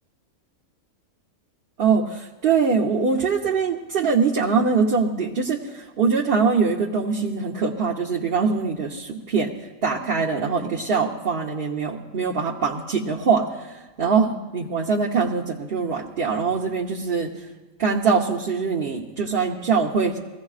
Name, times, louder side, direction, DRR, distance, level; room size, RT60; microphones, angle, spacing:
voice 1, 1.8-9.5 9.8-17.5 17.8-20.2, right 5 dB, 45° right, -2 dB, 1.0 m, -23 dB
22.0 x 16.0 x 2.4 m, 1.2 s
omnidirectional pair, 1.4 m